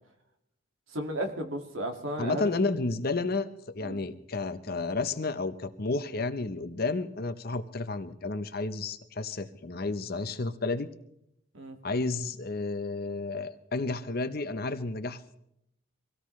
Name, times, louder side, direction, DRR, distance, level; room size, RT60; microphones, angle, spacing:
voice 1, 0.9-2.5 3.8-4.0 11.5-11.8, right 1 dB, 70° right, 4 dB, 2.1 m, -34 dB
voice 2, 2.2-10.9 11.8-15.4, left 3 dB, 45° left, 11 dB, 0.8 m, -31 dB
24.5 x 17.0 x 3.2 m, 0.78 s
head